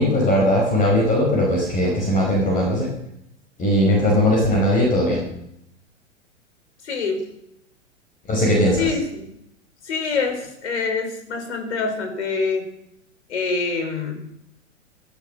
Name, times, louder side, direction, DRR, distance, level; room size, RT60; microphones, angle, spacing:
voice 1, 0.0-2.9 3.6-5.2 8.3-8.8, left 1 dB, 20° left, -1 dB, 5.0 m, -19 dB
voice 2, 6.8-7.2 8.8-9.3 9.8-12.7 13.3-14.2, left 4 dB, 60° left, 5 dB, 5.2 m, -25 dB
15.5 x 14.5 x 6.5 m, 0.79 s
figure-of-eight pair, 105°, 38 cm